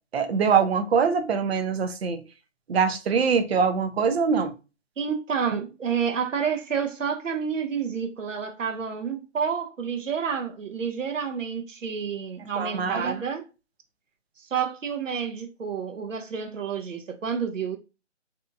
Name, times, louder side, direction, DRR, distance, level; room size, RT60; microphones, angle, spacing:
voice 1, 0.1-2.2 2.7-4.5 12.6-13.2, right 6 dB, 55° right, 0.5 m, -23 dB
voice 2, 5.0-13.5 14.4-17.8, right 6 dB, 90° right, 0.8 m, -29 dB
2.7 x 2.3 x 2.5 m
figure-of-eight pair, 160°, 37 cm